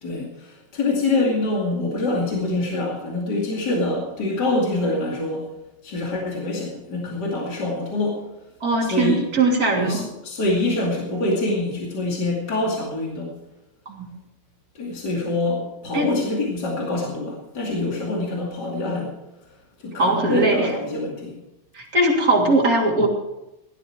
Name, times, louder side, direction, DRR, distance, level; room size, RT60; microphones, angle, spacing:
voice 1, 0.0-5.5 5.8-8.2 8.8-9.2 9.7-13.3 14.7-19.1 19.8-21.4, left 2 dB, 60° left, -2 dB, 3.1 m, -25 dB
voice 2, 8.6-10.1 13.9-14.1 15.9-16.1 20.0-20.7 21.7-23.1, right 2 dB, 50° right, -1 dB, 3.5 m, -20 dB
16.5 x 13.0 x 4.6 m, 0.92 s
omnidirectional pair, 2.1 m